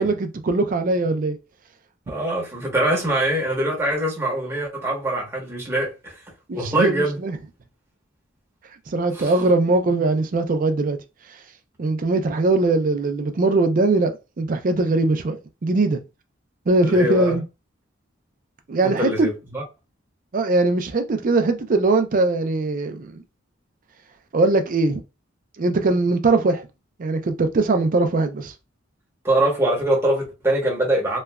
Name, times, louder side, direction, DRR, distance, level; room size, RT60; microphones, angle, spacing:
voice 1, 0.0-1.4 6.5-7.4 8.9-11.0 11.8-16.0 16.7-17.4 18.7-19.3 20.3-23.2 24.3-25.0 25.6-26.6 27.0-28.5, right 2 dB, 45° right, 0.4 m, -21 dB
voice 2, 2.1-6.1 6.5-7.2 9.1-9.3 16.8-17.4 18.8-19.6 29.2-31.2, right 1 dB, 15° right, 1.0 m, -23 dB
3.0 x 2.3 x 2.2 m
head